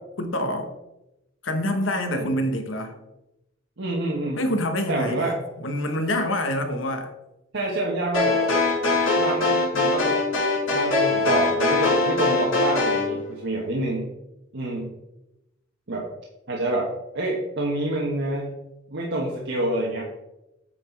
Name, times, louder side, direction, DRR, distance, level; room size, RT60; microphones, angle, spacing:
voice 1, 0.2-0.7 1.4-3.0 4.4-7.1, left 1 dB, 70° left, 6 dB, 1.1 m, -26 dB
voice 2, 3.8-4.4 4.9-5.4 7.5-8.5 9.2-10.2 10.7-14.1 14.5-14.9 15.9-16.1 16.5-18.5 18.9-20.0, right 1 dB, 65° right, -3 dB, 1.3 m, -27 dB
sound 1, 8.1-13.1, left 3 dB, 90° left, 2.7 m, -22 dB
8.9 x 4.2 x 4.5 m, 0.94 s
head